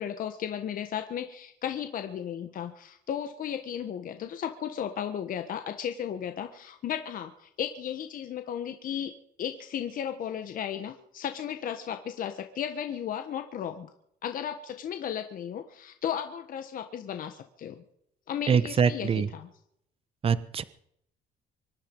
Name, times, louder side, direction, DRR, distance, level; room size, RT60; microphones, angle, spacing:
voice 1, 0.0-9.1 9.4-13.9 14.2-17.8 18.3-19.5, left 9 dB, 55° left, 7 dB, 1.4 m, -35 dB
voice 2, 18.5-19.3 20.2-20.6, right 6 dB, 35° right, 16 dB, 1.0 m, -24 dB
25.0 x 10.5 x 5.4 m, 0.71 s
cardioid pair, 110°, 17 cm